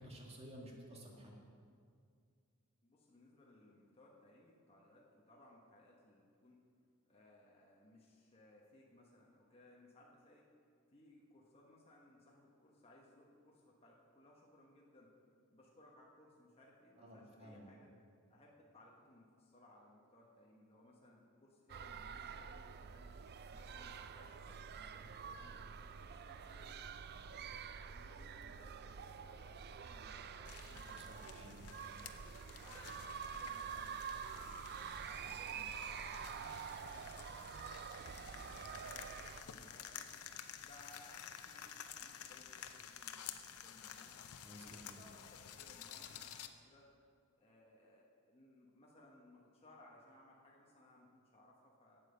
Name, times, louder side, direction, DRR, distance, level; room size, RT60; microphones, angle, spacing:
voice 1, 0.0-1.4 17.0-17.6 30.9-31.7 44.4-45.0, equal, 30° right, -2 dB, 1.9 m, -54 dB
voice 2, 2.8-6.6 7.1-10.5 10.9-15.1 15.5-17.9 18.3-23.1 23.5-31.3 31.9-34.6 35.1-40.1 40.6-44.2 44.7-46.9 47.4-52.0, left 1 dB, 25° left, -3 dB, 1.2 m, -64 dB
sound 1, 21.7-39.4, right 7 dB, 45° right, 0.4 m, -48 dB
sound 2, 30.4-46.5, left 9 dB, 75° left, 0.6 m, -52 dB
9.0 x 8.5 x 6.9 m, 2.2 s
head